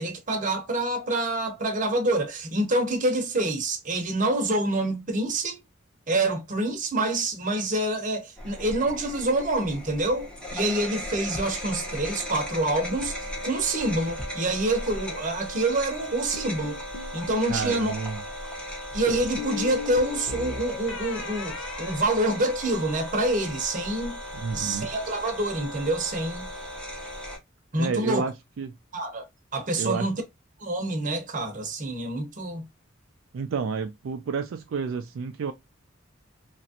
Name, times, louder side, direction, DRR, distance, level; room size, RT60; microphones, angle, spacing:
voice 1, 0.0-5.6 6.1-16.8 17.1-17.9 18.9-24.2 24.5-26.5 27.7-28.2 28.9-29.3 29.5-30.1 30.6-32.6, right 2 dB, 40° right, 0.9 m, -27 dB
sound 1, 8.4-27.4, equal, 5° left, 0.9 m, -37 dB
sound 2, 16.3-17.2 19.1-22.8, left 5 dB, 70° left, 0.6 m, -38 dB
voice 2, 17.5-18.2 24.3-24.9 27.8-28.7 29.8-30.1 33.3-35.5, right 5 dB, 75° right, 0.4 m, -30 dB
2.9 x 2.5 x 2.7 m
head